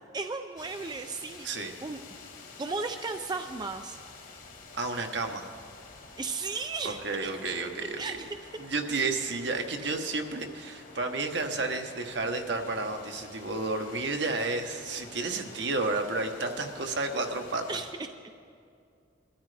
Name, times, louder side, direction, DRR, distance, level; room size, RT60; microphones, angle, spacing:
voice 1, 0.1-1.5 1.8-2.0 2.6-4.0 6.2-7.0 8.0-8.5 17.7-18.1, right 4 dB, 20° right, 6 dB, 0.4 m, -35 dB
sound 1, 0.6-17.9, left 3 dB, 45° left, 1.5 m, -49 dB
voice 2, 4.7-5.5 6.8-8.2 8.6-17.8, right 3 dB, 65° right, 4 dB, 1.1 m, -31 dB
22.0 x 13.0 x 3.4 m, 2.4 s
head